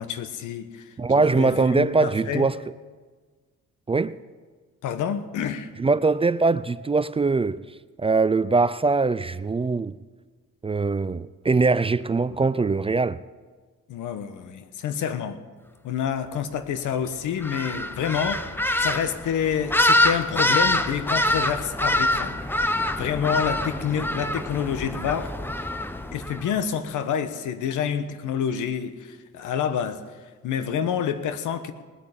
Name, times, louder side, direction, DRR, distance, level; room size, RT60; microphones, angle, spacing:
voice 1, 0.0-2.5 4.8-5.7 13.9-15.4 15.8-18.5 18.8-22.4 23.0-25.3 26.1-30.0 30.4-31.7, left 8 dB, 80° left, 1.3 m, -28 dB
voice 2, 1.0-2.6 3.9-4.2 5.8-7.6 8.0-10.0 10.6-13.2, right 4 dB, 20° right, 0.4 m, -22 dB
sound 1, 17.4-26.5, left 1 dB, 5° left, 0.9 m, -25 dB
19.0 x 9.0 x 8.5 m
cardioid pair, 90°, 30 cm